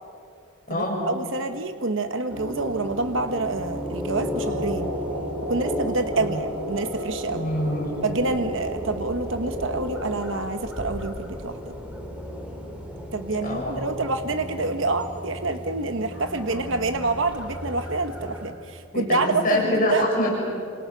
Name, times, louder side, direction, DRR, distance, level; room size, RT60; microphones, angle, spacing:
voice 1, 0.7-4.9 5.5-7.4 8.0-11.6 13.1-20.1, right 3 dB, 60° right, 8 dB, 1.1 m, -27 dB
sound 1, 2.3-18.5, left 1 dB, 5° right, 3.1 m, -35 dB
sound 2, 4.4-10.4, equal, 75° right, 3.7 m, -34 dB
voice 2, 7.3-8.1 13.4-13.9 18.9-20.3, left 1 dB, 40° left, -3 dB, 7.0 m, -25 dB
29.0 x 27.5 x 6.1 m, 2.4 s
head